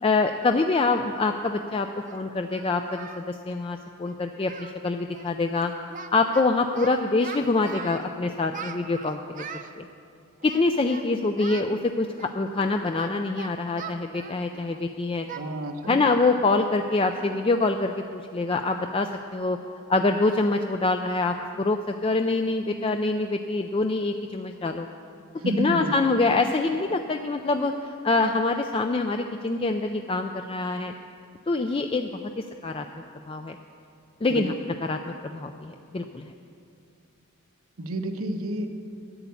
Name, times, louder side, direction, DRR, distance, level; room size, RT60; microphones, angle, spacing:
voice 1, 0.0-5.7 6.1-9.8 10.4-15.3 15.9-19.6 19.9-24.9 25.6-30.9 31.5-32.1 32.4-32.8 33.3-33.6 34.2-34.5 34.8-36.3, left 3 dB, 25° left, 6 dB, 0.3 m, -25 dB
Singing, 1.2-1.3 2.0-3.3 3.5-3.7 4.0-4.2 4.4-4.8 5.1-5.3 5.5-6.4 6.7-8.1 8.5-9.7 10.4-11.1 11.4-11.7 12.2-14.8 15.3-15.5 15.8-16.0 16.4-16.5 17.0-17.3, right 6 dB, 35° right, 0.6 m, -41 dB
voice 2, 15.2-16.3 25.3-26.1 34.3-34.5 37.8-38.7, right 1 dB, 85° right, 6 dB, 1.1 m, -31 dB
11.0 x 8.2 x 9.6 m, 2.5 s
head